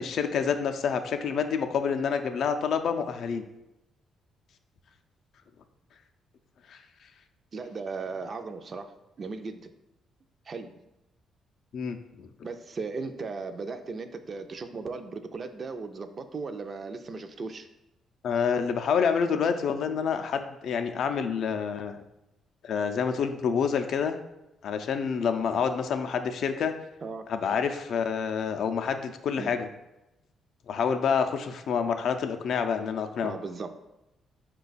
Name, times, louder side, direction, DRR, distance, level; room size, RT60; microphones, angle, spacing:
voice 1, 0.0-3.4 6.7-6.8 11.7-12.3 18.2-22.0 22.6-24.2 24.6-26.7 27.3-29.7 30.7-33.4, left 6 dB, 70° left, 7 dB, 0.4 m, -28 dB
voice 2, 7.5-9.7 10.5-10.8 12.4-17.7 27.0-27.3 29.4-29.5 33.2-33.7, right 4 dB, 45° right, 8 dB, 0.4 m, -37 dB
4.8 x 2.3 x 3.9 m, 0.93 s
cardioid pair, 90°, 0 cm